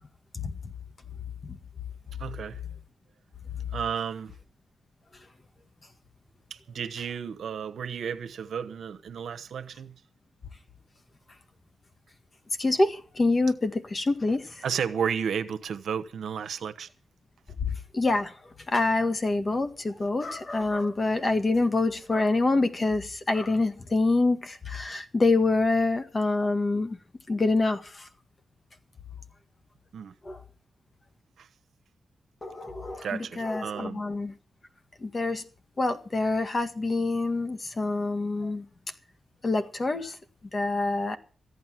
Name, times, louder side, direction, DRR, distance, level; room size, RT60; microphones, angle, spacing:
voice 1, 2.2-2.6 3.7-4.3 6.5-9.9 14.6-16.9 29.9-30.1 31.4-31.5 33.0-34.0, right 7 dB, 80° right, 1.0 m, -33 dB
voice 2, 12.6-14.6 17.9-18.3 18.7-27.0 27.3-28.1 30.3-30.4 32.4-34.3 35.0-35.4 35.8-38.7 39.4-40.2 40.5-41.2, left 3 dB, 40° left, 1.8 m, -26 dB
14.5 x 9.5 x 7.5 m
cardioid pair, 65°, 0 cm